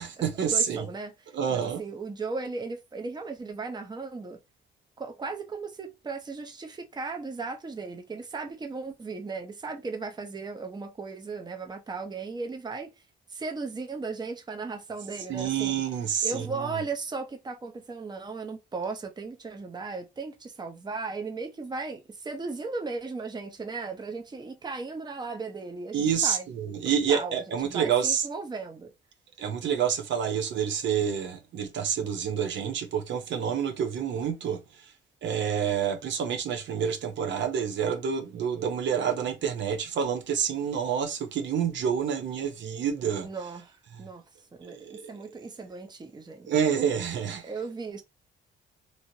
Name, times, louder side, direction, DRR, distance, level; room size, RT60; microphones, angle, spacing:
voice 1, 0.0-0.8 1.3-1.8 15.3-16.5 25.9-28.2 29.4-34.9 35.2-43.3 44.6-45.1 46.5-47.5, right 7 dB, 65° right, 0.7 m, -28 dB
voice 2, 0.5-4.4 5.0-12.9 13.3-15.7 16.2-26.5 26.8-28.9 43.2-44.2 44.5-46.5 47.4-48.0, right 4 dB, 20° right, 0.7 m, -36 dB
3.1 x 2.6 x 2.7 m
cardioid pair, 90°, 20 cm